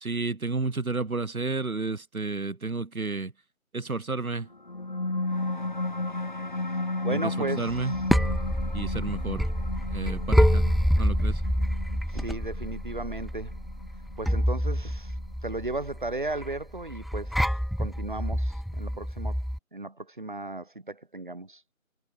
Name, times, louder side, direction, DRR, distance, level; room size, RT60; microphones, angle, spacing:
voice 1, 0.0-3.3 3.7-4.5 7.1-8.0 8.7-9.5 9.9-10.6 11.0-11.4, right 3 dB, 85° right, 1.8 m, -31 dB
sound 1, 4.5-15.5, left 2 dB, 35° left, 3.9 m, -34 dB
voice 2, 7.0-7.8 12.1-13.5 14.2-15.2 15.4-17.5 17.8-19.4 19.7-21.6, right 2 dB, 35° right, 3.5 m, -35 dB
sound 2, 7.7-19.6, equal, ahead, 0.4 m, -27 dB
figure-of-eight pair, 180°, 42 cm